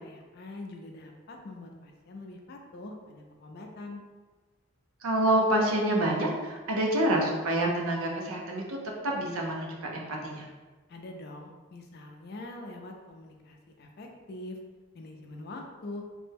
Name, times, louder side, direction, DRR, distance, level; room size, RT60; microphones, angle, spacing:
voice 1, 0.0-4.0 10.9-14.6 14.9-16.0, left 2 dB, 50° left, 2 dB, 0.4 m, -44 dB
voice 2, 5.0-8.8 9.0-10.5, right 1 dB, 75° right, -1 dB, 0.6 m, -27 dB
3.3 x 2.1 x 3.3 m, 1.3 s
head